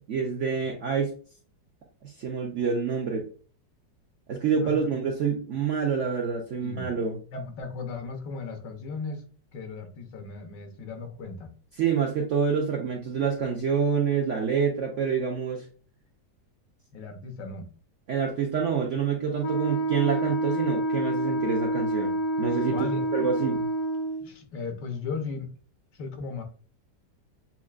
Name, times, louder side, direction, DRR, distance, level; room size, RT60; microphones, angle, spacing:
voice 1, 0.1-1.1 2.0-3.3 4.3-7.2 11.8-15.6 18.1-22.7 23.1-23.7, right 6 dB, 65° right, 1 dB, 0.7 m, -27 dB
voice 2, 6.6-6.9 7.3-11.5 16.9-17.7 20.6-20.7 22.7-23.1 24.2-25.5 25.9-26.4, left 4 dB, 80° left, 5 dB, 1.6 m, -36 dB
Wind instrument woodwind instrument, 19.4-24.3, right 1 dB, 65° left, 1.0 m, -28 dB
7.1 x 2.6 x 2.4 m, 0.39 s
omnidirectional pair, 1.9 m